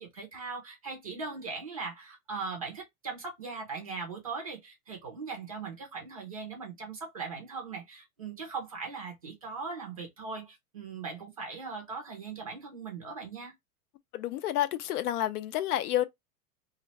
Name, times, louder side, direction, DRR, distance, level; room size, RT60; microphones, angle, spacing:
voice 1, 0.0-13.5, right 4 dB, 25° right, 0.4 m, -39 dB
voice 2, 14.1-16.1, left 12 dB, 80° left, 0.6 m, -29 dB
2.5 x 2.1 x 3.9 m
supercardioid pair, 175°, 44 cm